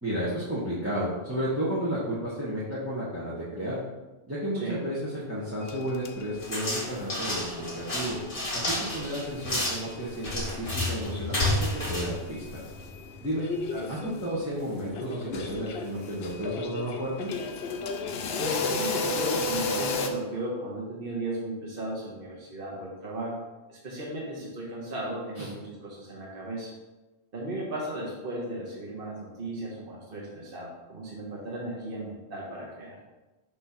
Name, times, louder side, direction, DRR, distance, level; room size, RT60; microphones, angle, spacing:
voice 1, 0.0-3.8 4.3-8.2 8.5-12.6 13.2-13.5 13.9-17.3 25.4-25.5, equal, 10° right, -9 dB, 1.2 m, -32 dB
sound 1, 5.6-7.0 7.3-10.6 10.9-11.0 11.5-20.1, left 4 dB, 65° left, 0.9 m, -34 dB
sound 2, 6.4-13.0, left 1 dB, 50° left, 2.0 m, -31 dB
voice 2, 18.4-23.4 23.7-26.7 27.3-33.0, right 1 dB, 50° right, -4 dB, 1.4 m, -35 dB
6.4 x 3.2 x 5.8 m, 1.1 s
omnidirectional pair, 1.2 m